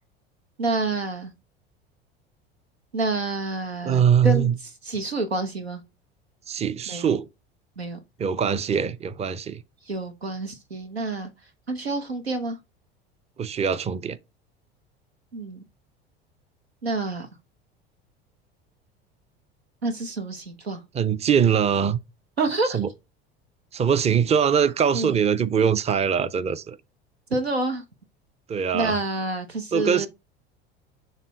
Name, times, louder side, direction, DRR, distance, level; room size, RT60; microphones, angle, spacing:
voice 1, 0.6-1.3 2.9-4.5 4.8-5.8 6.9-7.1 7.8-8.0 9.9-11.3 11.7-12.6 15.3-15.6 16.8-17.3 19.8-20.8 22.4-22.8 24.9-25.2 27.3-27.8 28.7-30.1, right 3 dB, 90° right, 1.0 m, -28 dB
voice 2, 3.8-4.5 6.5-7.3 8.2-9.6 13.4-14.2 20.9-22.0 22.7-22.9 23.7-26.8 28.5-29.0 29.7-30.1, right 7 dB, 20° right, 0.5 m, -22 dB
6.6 x 3.6 x 4.0 m
figure-of-eight pair, 70°, 30 cm